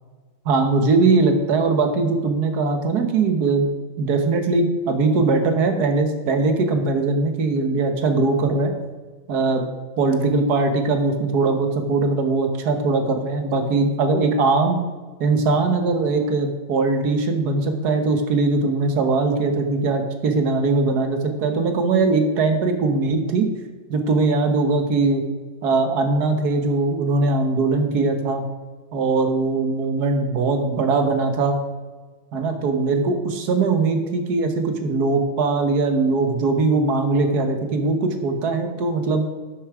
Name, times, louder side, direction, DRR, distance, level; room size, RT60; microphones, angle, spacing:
voice 1, 0.4-3.7 4.0-8.7 9.3-9.7 10.0-14.8 15.2-23.5 23.9-25.2 25.6-28.4 28.9-31.6 32.3-39.3, right 3 dB, 55° right, 6 dB, 1.5 m, -20 dB
12.0 x 7.0 x 4.8 m, 1.4 s
omnidirectional pair, 2.4 m